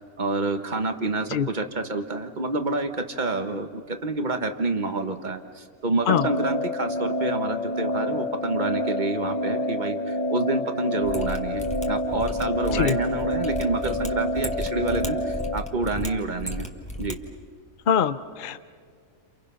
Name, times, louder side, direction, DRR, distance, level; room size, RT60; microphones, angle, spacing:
voice 1, 0.2-16.7 17.0-17.2, right 2 dB, 35° right, 7 dB, 1.5 m, -28 dB
sound 1, 6.1-15.6, left 1 dB, 30° left, 1.4 m, -28 dB
Mechanisms, 11.0-17.1 17.4-17.5, equal, 5° left, 1.6 m, -34 dB
voice 2, 17.9-18.6, left 8 dB, 45° left, 12 dB, 0.7 m, -23 dB
30.0 x 29.0 x 5.7 m, 2.1 s
omnidirectional pair, 1.5 m